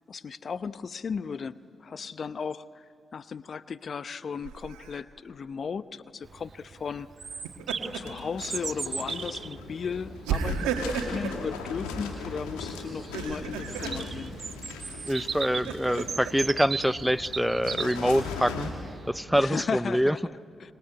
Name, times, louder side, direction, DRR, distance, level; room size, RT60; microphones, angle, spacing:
voice 1, 0.1-7.1 7.9-14.3 19.3-20.7, left 6 dB, 55° left, 16 dB, 0.8 m, -36 dB
Laughter, 4.4-5.0 7.3-8.2 8.6-8.8 10.2-11.4 13.0-14.0 15.1-16.3, right 6 dB, 85° right, 1.7 m, -33 dB
Bird vocalization bird call bird song, 6.2-19.0, right 5 dB, 55° right, 0.6 m, -38 dB
sound 1, 7.8-18.7, left 4 dB, 90° left, 2.6 m, -40 dB
voice 2, 15.0-18.7 19.1-20.2, equal, ahead, 17 dB, 0.6 m, -25 dB
25.5 x 23.5 x 9.8 m, 2.4 s
hypercardioid pair, 40°, 0 cm